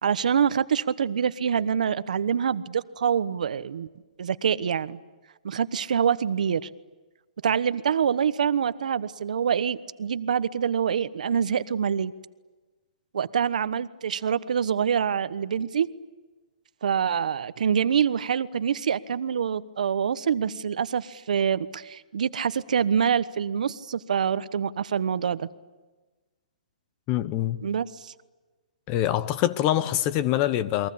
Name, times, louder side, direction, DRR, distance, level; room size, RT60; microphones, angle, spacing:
voice 1, 0.0-3.9 4.2-5.0 5.4-6.7 7.4-12.1 13.1-15.9 16.8-25.5 27.6-28.1, right 7 dB, 70° right, 1.1 m, -25 dB
voice 2, 27.1-27.6 28.9-30.9, left 13 dB, 25° left, 0.9 m, -24 dB
29.5 x 22.5 x 8.6 m
hypercardioid pair, 155°, 4 cm